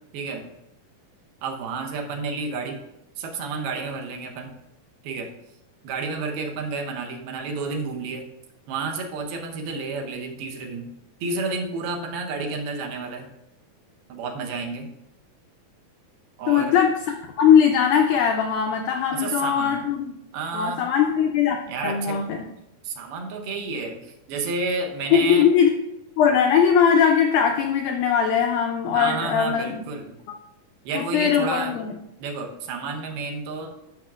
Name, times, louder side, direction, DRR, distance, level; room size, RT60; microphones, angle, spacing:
voice 1, 0.1-0.5 1.4-2.8 3.2-4.6 5.0-5.3 5.8-8.3 8.7-10.9 11.2-13.3 14.1-14.9 16.4-16.8 19.1-19.9 20.3-20.8 21.7-22.2 22.8-25.5 28.9-30.2 30.8-31.8 32.2-33.8, right 4 dB, 90° right, 2 dB, 3.0 m, -30 dB
voice 2, 16.5-20.1 20.5-21.6 21.8-22.4 25.1-25.7 26.2-29.9 31.0-31.9, left 8 dB, 85° left, 3 dB, 1.7 m, -20 dB
13.5 x 6.5 x 2.4 m, 0.86 s
omnidirectional pair, 4.3 m